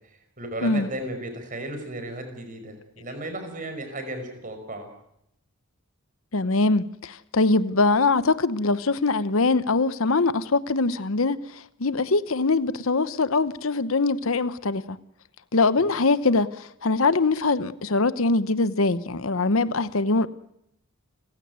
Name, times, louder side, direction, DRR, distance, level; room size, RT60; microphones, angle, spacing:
voice 1, 0.4-4.9 15.8-15.9, right 1 dB, 40° right, 5.5 m, -35 dB
voice 2, 6.3-15.0 15.5-20.3, left 3 dB, 75° left, 0.9 m, -23 dB
29.5 x 16.0 x 9.5 m
head